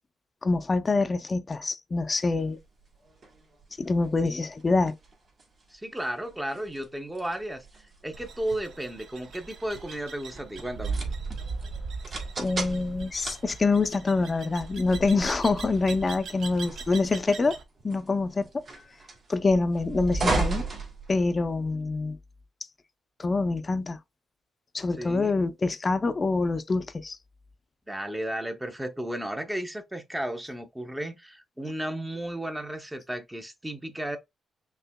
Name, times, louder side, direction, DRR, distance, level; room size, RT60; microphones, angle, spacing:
voice 1, 0.4-2.6 3.8-4.9 12.4-17.6 17.8-18.6 19.3-20.6 21.1-22.2 23.2-24.0 24.7-27.2, left 3 dB, 30° left, 0.5 m, -25 dB
sound 1, 2.3-21.7, right 3 dB, 45° right, 1.6 m, -37 dB
voice 2, 5.7-11.0 25.0-25.3 27.9-34.2, right 1 dB, 10° right, 0.7 m, -34 dB
sound 2, 8.1-17.6, right 4 dB, 70° right, 0.8 m, -38 dB
5.6 x 2.9 x 2.2 m
cardioid pair, 105°, 0 cm